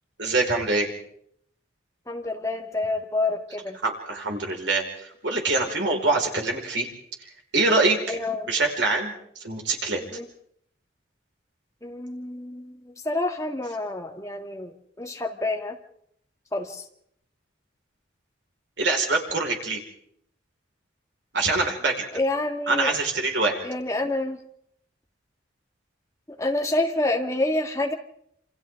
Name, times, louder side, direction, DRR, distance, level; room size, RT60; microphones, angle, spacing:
voice 1, 0.2-0.9 3.8-6.9 7.2-8.2 8.5-10.0 18.8-19.8 21.3-22.1 22.7-23.6, right 3 dB, 75° right, 1 dB, 4.8 m, -24 dB
voice 2, 2.1-3.8 8.1-8.5 10.1-10.2 11.8-14.7 15.0-15.8 16.5-16.8 22.1-22.9 23.6-24.4 26.4-27.9, left 2 dB, 15° left, 3 dB, 1.8 m, -28 dB
28.0 x 26.0 x 3.7 m, 0.70 s
head